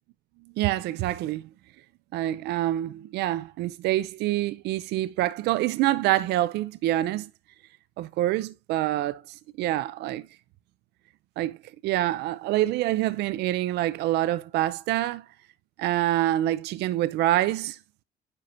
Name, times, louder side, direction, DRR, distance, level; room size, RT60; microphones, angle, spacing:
voice 1, 0.6-1.4 2.1-7.3 8.0-9.2 9.6-10.2 11.4-11.6 11.8-15.2 15.8-17.8, right 14 dB, 85° right, 0.6 m, -26 dB
9.8 x 6.0 x 2.6 m
cardioid pair, 110°, 17 cm